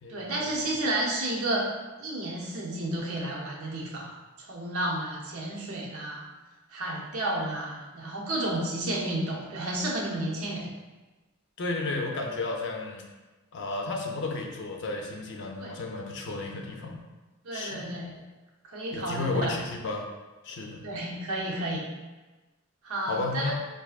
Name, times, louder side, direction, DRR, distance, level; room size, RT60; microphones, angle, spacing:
voice 1, 0.1-1.7 2.0-4.1 4.4-6.2 6.7-10.7 15.6-15.8 17.4-18.1 18.6-19.6 20.8-21.9 22.8-23.5, right 1 dB, 85° right, -2 dB, 0.7 m, -31 dB
voice 2, 11.6-13.0 13.5-17.0 17.5-17.8 18.9-20.1 20.4-20.8 23.1-23.5, left 3 dB, 60° left, 1 dB, 0.5 m, -32 dB
4.7 x 2.6 x 2.4 m, 1.2 s
head